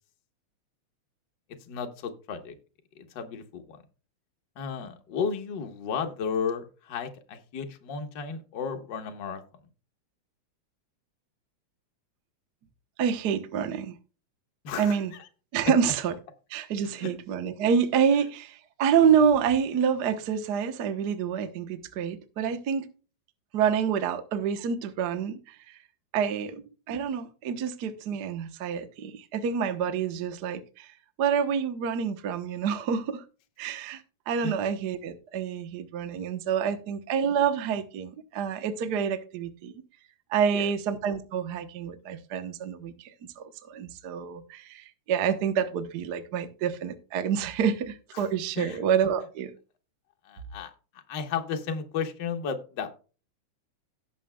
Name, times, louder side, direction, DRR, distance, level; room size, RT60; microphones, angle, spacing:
voice 1, 1.7-2.6 2.9-3.8 4.5-9.4 14.6-15.0 16.9-17.1 34.4-34.6 36.1-36.2 40.5-40.7 48.1-48.3 48.6-48.8 50.2-50.7 51.1-52.9, left 6 dB, 50° left, 1.5 m, -33 dB
voice 2, 13.0-14.0 14.8-15.1 15.5-16.1 16.5-22.9 23.5-25.8 26.1-30.9 31.2-33.2 33.6-39.7 40.3-43.1 43.4-49.5, right 7 dB, 85° right, 0.9 m, -27 dB
17.5 x 7.4 x 2.3 m
omnidirectional pair, 3.4 m